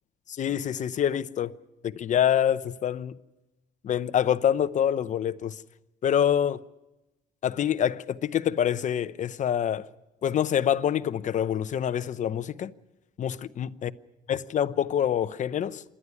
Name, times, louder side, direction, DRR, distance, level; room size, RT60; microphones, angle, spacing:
voice 1, 0.3-1.5 1.8-3.2 3.8-5.6 6.0-6.6 7.4-9.9 10.2-12.7 13.2-13.9 14.3-15.8, left 9 dB, 45° left, 0.8 m, -26 dB
27.0 x 11.0 x 9.8 m
cardioid pair, 110°, 17 cm